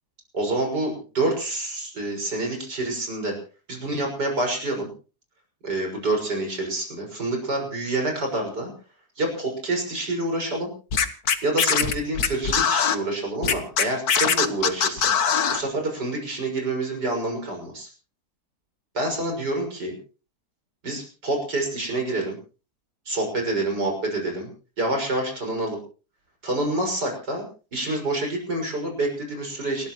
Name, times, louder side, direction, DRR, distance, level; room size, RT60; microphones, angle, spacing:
voice 1, 0.3-3.3 3.7-4.9 5.6-8.7 9.2-10.7 11.4-17.9 18.9-20.0 20.8-22.4 23.1-24.5 24.8-25.8 26.4-27.5 27.7-29.9, right 2 dB, 85° right, 1 dB, 6.9 m, -27 dB
Scratching (performance technique), 10.9-13.0 13.4-15.6, left 7 dB, 65° left, 1.8 m, -21 dB
29.0 x 13.0 x 3.2 m, 0.36 s
omnidirectional pair, 1.8 m